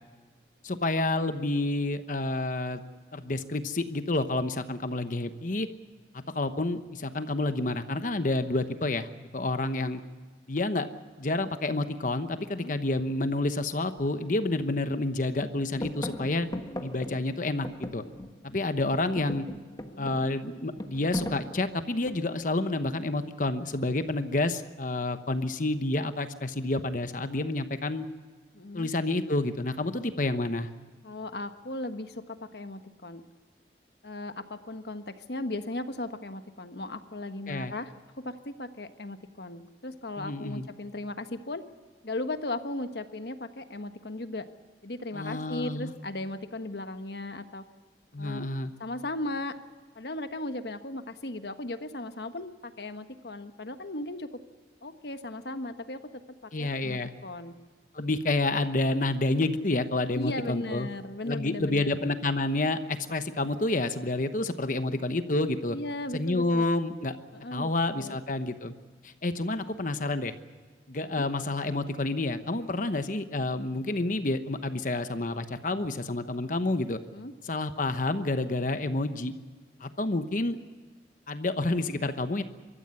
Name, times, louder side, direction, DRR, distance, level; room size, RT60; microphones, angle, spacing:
voice 1, 0.6-2.8 3.1-5.7 6.3-9.1 9.3-10.0 10.5-10.9 11.2-16.5 16.8-17.7 17.9-18.0 18.4-19.4 20.0-28.1 28.7-30.7 37.5-37.7 40.2-40.7 45.1-45.9 48.1-48.7 56.5-57.1 57.9-60.9 61.2-65.8 66.1-67.2 67.5-68.7 69.0-70.3 70.9-77.0 77.4-79.3 79.8-80.6 81.3-82.4, left 2 dB, 50° left, 9 dB, 1.0 m, -29 dB
sound 1, 14.0-14.1 14.5-15.1 15.4-18.5 18.8-22.4 23.4-23.9, left 1 dB, 20° left, 1.3 m, -39 dB
voice 2, 28.5-28.9 31.0-33.2 34.0-37.9 38.2-41.6 42.0-44.5 44.8-47.6 48.2-48.4 48.8-49.6 49.9-54.3 54.8-56.0 56.4-57.5 60.1-62.0 65.7-66.7 67.3-68.2 71.2-71.3 77.1-77.3, left 2 dB, 65° left, 8 dB, 1.4 m, -37 dB
24.0 x 14.0 x 9.7 m, 1.5 s
head